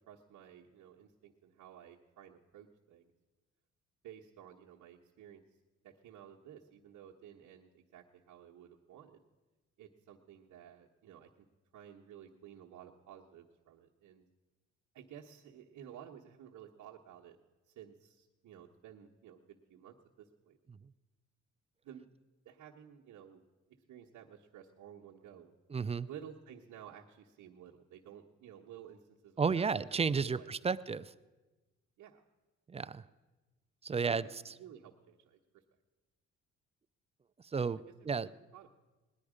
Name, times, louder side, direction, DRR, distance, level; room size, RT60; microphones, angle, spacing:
voice 1, 0.1-3.1 4.0-5.6 5.8-9.2 9.8-11.3 11.7-14.3 14.9-17.4 17.7-20.6 21.8-22.1 22.4-23.4 23.7-25.5 26.0-30.7 32.0-32.2 33.9-35.6 38.1-38.7, right 9 dB, 75° right, -3 dB, 1.1 m, -54 dB
voice 2, 25.7-26.1 29.4-31.0 32.7-33.1 33.8-34.5 37.5-38.3, right 5 dB, 20° right, 15 dB, 0.4 m, -33 dB
18.5 x 10.5 x 5.0 m, 1.2 s
cardioid pair, 90°, 30 cm